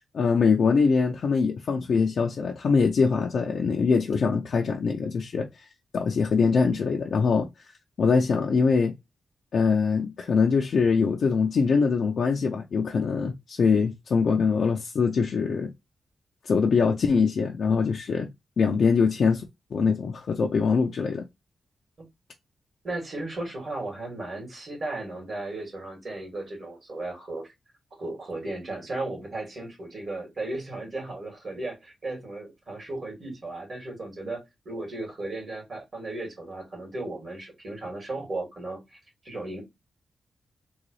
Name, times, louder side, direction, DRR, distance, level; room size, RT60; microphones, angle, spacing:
voice 1, 0.1-5.7 5.9-7.5 8.0-8.9 9.5-15.7 16.5-18.3 18.6-19.4 19.7-21.2, left 5 dB, 70° left, 0.5 m, -23 dB
voice 2, 22.8-27.5 28.0-39.0 39.2-39.6, right 2 dB, 45° right, 2.3 m, -35 dB
3.9 x 2.3 x 3.2 m
cardioid pair, 95°, 0 cm